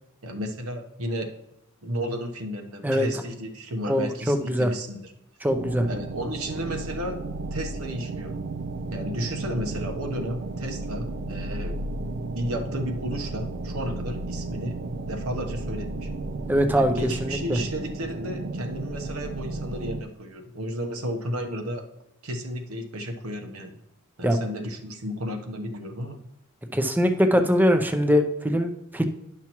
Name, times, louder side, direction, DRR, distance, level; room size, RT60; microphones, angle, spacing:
voice 1, 0.2-1.3 1.8-5.1 5.9-7.2 7.5-8.3 8.9-11.8 12.3-14.8 15.1-16.1 16.7-21.8 22.2-23.8 24.2-26.2, equal, 75° right, 4 dB, 1.0 m, -33 dB
voice 2, 3.9-4.7 5.4-5.9 16.5-17.6 24.2-24.4 26.7-29.0, equal, 10° right, 7 dB, 0.6 m, -22 dB
sound 1, 5.5-20.0, right 2 dB, 55° right, 0.4 m, -33 dB
10.5 x 5.8 x 3.0 m, 0.82 s
head